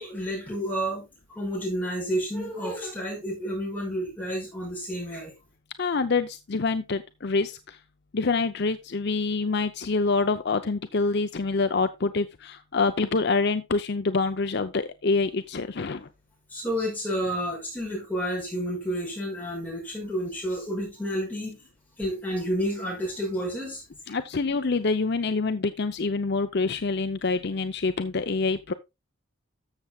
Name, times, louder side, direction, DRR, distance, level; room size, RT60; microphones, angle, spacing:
voice 1, 0.0-5.3 16.5-21.6 22.0-23.8, equal, 10° left, -2 dB, 5.9 m, -30 dB
voice 2, 5.8-7.8 8.1-16.1 24.1-28.7, left 4 dB, 50° left, 10 dB, 0.6 m, -26 dB
14.0 x 7.1 x 2.3 m, 0.23 s
head